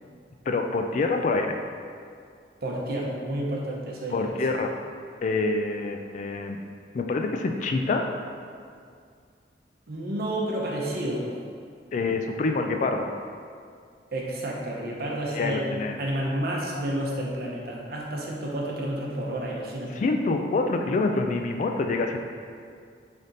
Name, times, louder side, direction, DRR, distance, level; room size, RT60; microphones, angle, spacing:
voice 1, 0.5-1.6 4.1-4.7 5.2-6.6 6.9-8.1 11.9-13.1 15.3-16.0 20.0-22.2, left 3 dB, 45° left, 4 dB, 0.3 m, -26 dB
voice 2, 2.6-4.4 9.9-11.3 14.1-20.0, right 1 dB, 60° right, -2 dB, 0.8 m, -30 dB
3.8 x 3.4 x 4.1 m, 2.2 s
head